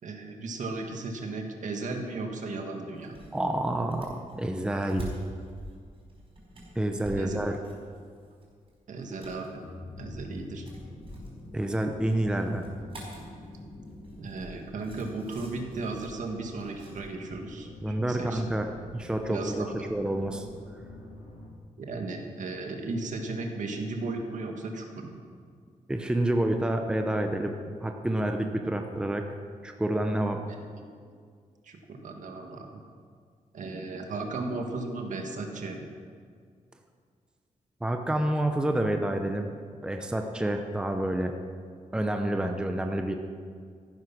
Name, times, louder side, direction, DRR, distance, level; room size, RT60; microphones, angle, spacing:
voice 1, 0.0-3.2 7.1-7.4 8.9-9.6 10.0-10.6 14.2-18.4 19.3-19.9 21.8-25.2 30.5-30.8 31.6-32.8 33.5-35.9, right 3 dB, 65° right, 3 dB, 1.9 m, -35 dB
sound 1, 3.0-17.3, right 1 dB, 40° right, 4.8 m, -47 dB
voice 2, 3.3-5.1 6.8-7.5 11.5-12.6 17.8-19.6 19.9-20.5 25.9-27.5 27.8-29.3 29.6-30.4 37.8-39.5 39.8-41.3 41.9-43.1, right 1 dB, 5° right, 5 dB, 0.7 m, -28 dB
sound 2, 9.4-21.5, left 1 dB, 50° left, 3.1 m, -46 dB
14.5 x 11.5 x 6.0 m, 2.1 s
wide cardioid pair, 175°, 14 cm